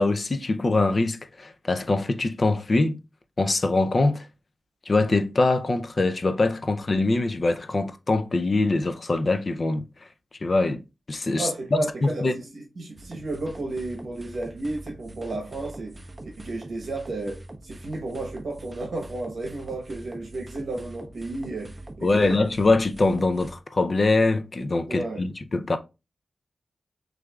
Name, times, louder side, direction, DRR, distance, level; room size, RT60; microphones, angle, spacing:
voice 1, 0.0-3.0 3.4-4.3 4.9-9.9 10.4-12.4 22.0-25.8, left 2 dB, 40° left, 0.4 m, -23 dB
voice 2, 11.4-16.1 16.4-22.4 24.9-25.2, right 2 dB, 70° right, 0.9 m, -33 dB
sound 1, 13.0-23.5, right 1 dB, 20° right, 0.6 m, -43 dB
6.3 x 2.5 x 2.3 m
wide cardioid pair, 125°, 0 cm